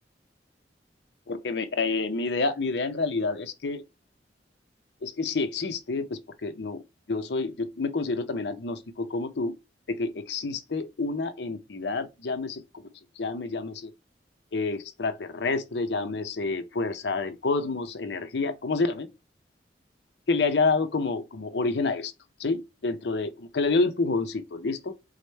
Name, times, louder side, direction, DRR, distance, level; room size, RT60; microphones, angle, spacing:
voice 1, 1.3-3.8 5.0-6.8 7.1-9.5 9.9-12.6 13.2-13.9 14.5-19.1 20.3-22.1 22.4-24.9, left 3 dB, 70° left, 0.6 m, -28 dB
4.8 x 2.1 x 4.3 m
head